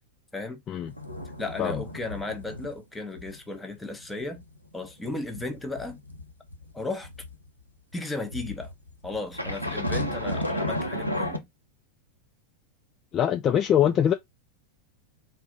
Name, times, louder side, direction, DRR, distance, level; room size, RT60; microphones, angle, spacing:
sound 1, 0.9-2.8 3.1-3.4 3.7-7.4 8.3-11.4, left 1 dB, 90° right, 0.7 m, -33 dB
voice 1, 1.4-4.4 4.7-6.0 6.7-7.1 7.9-8.7 9.0-11.5, left 2 dB, 10° left, 0.9 m, -35 dB
voice 2, 13.1-14.1, left 9 dB, 30° left, 0.4 m, -23 dB
3.9 x 2.3 x 3.8 m
figure-of-eight pair, 90°, 0 cm